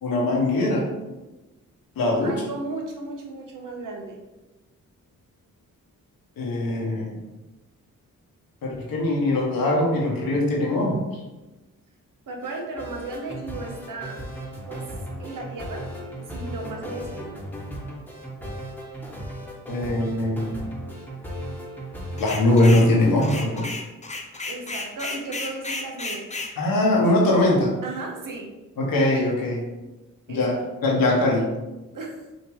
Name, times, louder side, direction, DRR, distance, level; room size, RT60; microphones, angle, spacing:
voice 1, 0.0-0.8 2.0-2.3 6.4-7.2 8.6-11.0 19.7-20.6 22.2-23.7 26.6-27.7 28.8-29.7 30.3-31.5, left 1 dB, 80° left, -2 dB, 1.2 m, -21 dB
voice 2, 2.0-4.2 12.3-14.2 14.7-14.9 15.2-15.9 16.1-17.3 24.5-26.3 27.8-28.5 30.3-30.7 31.9-32.2, right 3 dB, 65° right, 1 dB, 1.0 m, -35 dB
sound 1, 12.4-23.7, equal, 5° left, 1.2 m, -36 dB
sound 2, 22.2-22.9 23.2-26.5, left 3 dB, 20° left, 0.6 m, -33 dB
5.1 x 2.8 x 3.2 m, 1.1 s
cardioid pair, 60°, 34 cm